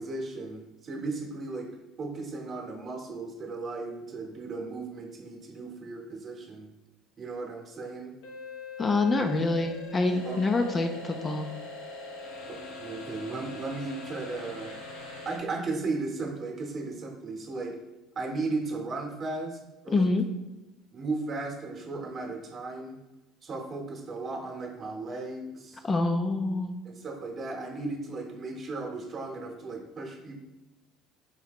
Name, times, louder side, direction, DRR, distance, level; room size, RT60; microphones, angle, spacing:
voice 1, 0.0-1.7 2.0-6.7 7.2-8.2 10.3-10.4 12.5-14.7 15.2-17.8 18.1-20.1 20.9-23.0 23.4-25.8 26.8-30.4, right 3 dB, 35° right, 2 dB, 0.9 m, -36 dB
sound 1, 8.2-15.4, left 3 dB, 80° left, 0.8 m, -42 dB
voice 2, 8.8-11.5 19.9-20.2 25.8-26.7, left 3 dB, 25° left, 6 dB, 0.4 m, -26 dB
4.7 x 2.7 x 3.5 m, 1.0 s
supercardioid pair, 105°, 0 cm